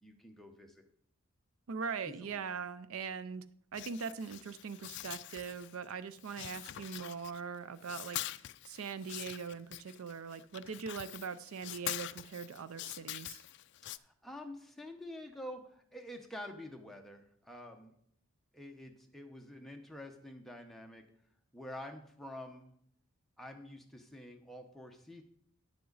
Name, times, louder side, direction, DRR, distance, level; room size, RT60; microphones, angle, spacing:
voice 1, 0.0-0.9 2.0-2.4 13.9-17.9 18.5-21.0 21.5-22.7 23.4-25.2, left 1 dB, ahead, 2 dB, 0.9 m, -48 dB
voice 2, 1.7-3.4 3.7-8.2 8.7-13.4, right 6 dB, 70° right, 14 dB, 0.4 m, -41 dB
sound 1, 3.7-5.9 6.2-7.6 7.8-14.0, left 14 dB, 50° left, 0.3 m, -44 dB
10.5 x 7.6 x 4.0 m, 0.66 s
head